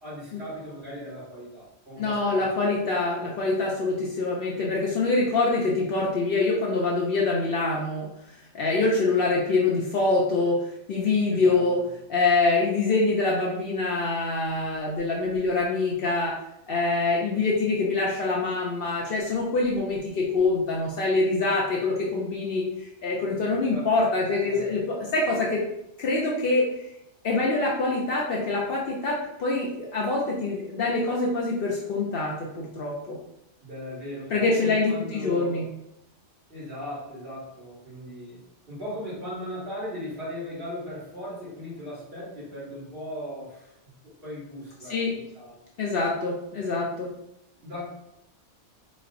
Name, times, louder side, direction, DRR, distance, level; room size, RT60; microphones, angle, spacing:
voice 1, 0.0-2.7 11.3-11.8 23.7-23.8 24.4-24.7 33.6-35.7 36.5-43.9 44.2-45.6 47.6-47.9, left 1 dB, 55° right, -8 dB, 1.8 m, -38 dB
voice 2, 2.0-8.1 8.5-10.6 10.9-11.8 12.1-16.3 16.7-25.6 26.0-26.6 27.2-33.2 34.3-35.6 44.9-45.1 45.8-47.1, left 3 dB, 60° left, -3 dB, 0.7 m, -25 dB
4.1 x 2.0 x 2.4 m, 0.79 s
omnidirectional pair, 1.2 m